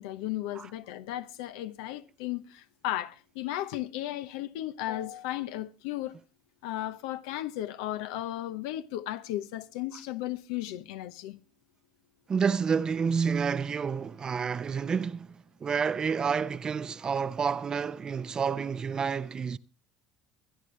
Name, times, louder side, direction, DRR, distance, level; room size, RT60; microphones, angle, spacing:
voice 1, 0.0-6.1 6.6-11.4, left 14 dB, 75° left, 0.9 m, -35 dB
voice 2, 12.3-19.6, right 6 dB, 30° right, 0.7 m, -29 dB
24.0 x 10.0 x 3.2 m
hypercardioid pair, 80°, 2 cm